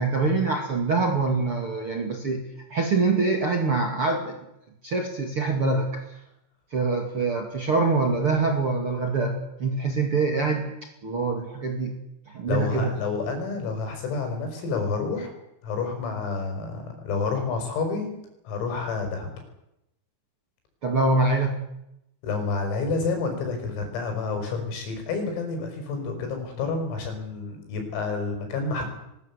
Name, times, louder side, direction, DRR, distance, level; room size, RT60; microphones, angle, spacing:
voice 1, 0.0-2.4 2.7-4.3 4.8-6.0 6.7-10.7 11.0-11.9 12.3-12.9 20.8-21.6, right 3 dB, 40° right, 2 dB, 2.1 m, -24 dB
voice 2, 12.5-15.3 15.6-18.2 18.5-19.3 22.2-28.9, left 4 dB, 85° left, 5 dB, 7.9 m, -29 dB
22.0 x 20.5 x 8.3 m, 0.84 s
omnidirectional pair, 5.9 m